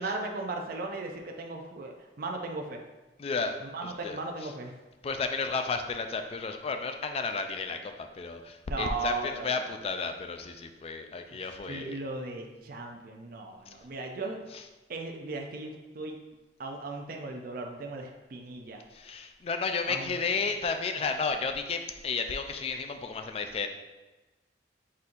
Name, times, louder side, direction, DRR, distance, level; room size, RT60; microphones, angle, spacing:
voice 1, 0.0-2.8 3.6-4.7 8.7-9.6 11.3-14.4 14.9-16.2 16.6-18.8 19.9-20.2, right 3 dB, 50° right, 2 dB, 0.4 m, -37 dB
voice 2, 3.2-3.6 3.8-4.5 5.0-12.0 13.7-13.8 14.5-14.6 18.9-23.7, left 4 dB, 35° left, 6 dB, 0.3 m, -33 dB
4.2 x 3.8 x 2.5 m, 1.1 s
head